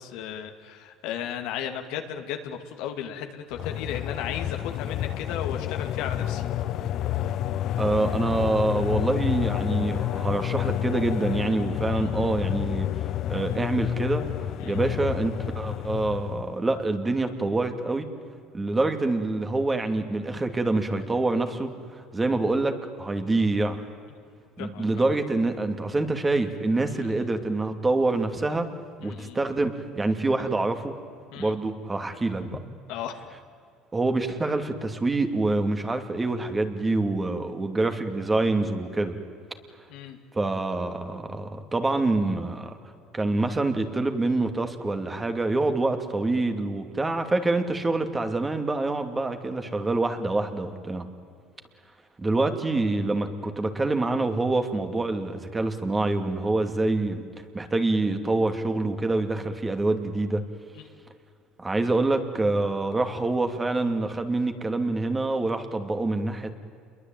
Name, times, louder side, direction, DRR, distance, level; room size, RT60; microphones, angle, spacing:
voice 1, 0.0-6.4 11.9-12.2 14.6-14.8 24.6-24.9 26.9-27.3 29.0-29.4 31.3-31.5 32.9-33.2 34.4-34.5 39.9-40.2 60.7-60.8, left 9 dB, 75° left, 5 dB, 2.3 m, -35 dB
sound 1, 3.5-16.6, left 12 dB, 60° left, 0.7 m, -29 dB
voice 2, 7.8-12.9 13.3-18.1 18.5-23.8 24.6-28.7 29.0-30.9 31.4-32.6 33.9-39.2 40.3-42.8 43.1-51.1 52.2-57.2 57.5-60.4 61.6-66.6, right 2 dB, 20° right, 7 dB, 2.7 m, -26 dB
28.5 x 22.0 x 9.2 m, 2.3 s
supercardioid pair, 85°, 0 cm